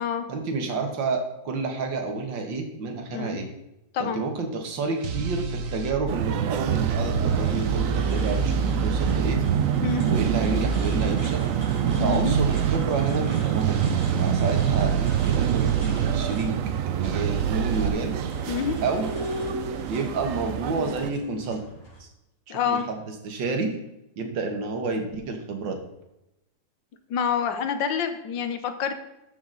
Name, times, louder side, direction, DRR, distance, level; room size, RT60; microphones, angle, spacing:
voice 1, 0.3-3.5 4.0-9.4 10.1-11.5 12.0-13.9 14.2-16.5 16.8-18.2 18.8-19.1 19.9-21.6 22.0-22.1 22.5-23.7 24.2-25.8, right 4 dB, 90° right, 4 dB, 2.1 m, -29 dB
sound 1, 5.0-5.9 6.7-9.4 10.2-11.1 11.9-12.8 13.6-16.2 17.0-17.9, right 5 dB, 55° right, 1.1 m, -28 dB
sound 2, 6.1-21.1, right 9 dB, 70° right, 0.7 m, -26 dB
sound 3, 7.1-22.0, right 1 dB, 40° left, 3.4 m, -44 dB
voice 2, 12.0-12.3 18.5-18.8 22.5-22.8 27.1-29.0, left 7 dB, 85° left, 9 dB, 1.6 m, -27 dB
13.0 x 6.0 x 3.9 m, 0.88 s
omnidirectional pair, 2.0 m